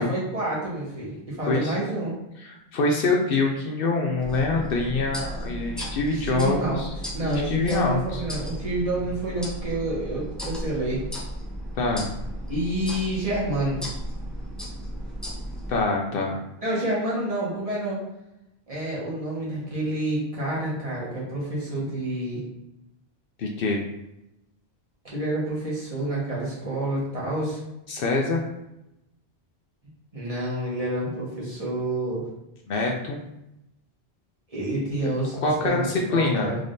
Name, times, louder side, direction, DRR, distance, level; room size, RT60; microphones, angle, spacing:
voice 1, 0.0-2.1 6.1-6.8 7.1-11.0 12.5-13.8 16.6-18.0 18.7-22.4 25.0-27.6 30.1-32.2 34.5-36.6, right 1 dB, 35° right, -7 dB, 1.4 m, -28 dB
voice 2, 2.4-6.9 7.2-8.2 11.8-12.1 15.7-16.4 23.4-23.8 27.9-28.4 32.7-33.2 35.0-35.1 35.4-36.5, left 3 dB, 65° left, 1 dB, 0.7 m, -25 dB
sound 1, 4.2-15.8, equal, ahead, 0.6 m, -35 dB
3.8 x 3.4 x 2.6 m, 0.88 s
omnidirectional pair, 1.1 m